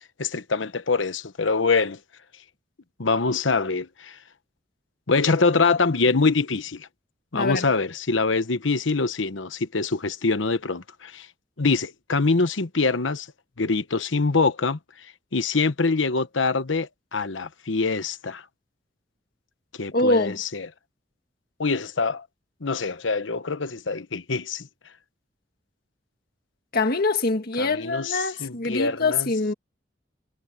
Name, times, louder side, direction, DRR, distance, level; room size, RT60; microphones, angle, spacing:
voice 1, 0.2-2.0 3.0-4.1 5.1-6.9 7.3-11.3 11.6-13.3 13.6-14.8 15.3-18.4 19.8-20.7 21.6-22.2 22.6-24.7 27.6-29.3, left 4 dB, 85° left, 1.1 m, -24 dB
voice 2, 7.3-7.7 19.9-20.4 26.7-29.5, left 3 dB, 55° left, 1.8 m, -24 dB
head